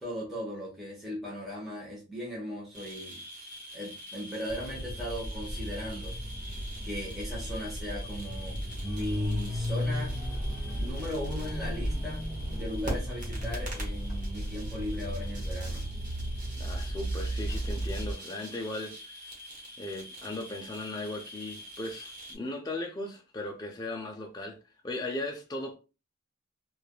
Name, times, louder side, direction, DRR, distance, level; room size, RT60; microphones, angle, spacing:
voice 1, 0.0-3.2 3.7-6.2 6.8-10.2 10.8-15.8, equal, ahead, 0.8 m, -38 dB
sound 1, 2.7-22.4, equal, 40° right, 1.1 m, -45 dB
sound 2, 4.5-18.1, equal, 15° right, 1.3 m, -34 dB
voice 2, 16.6-19.2 19.8-24.6 24.8-25.8, left 2 dB, 20° left, 0.4 m, -37 dB
3.2 x 2.3 x 2.2 m
head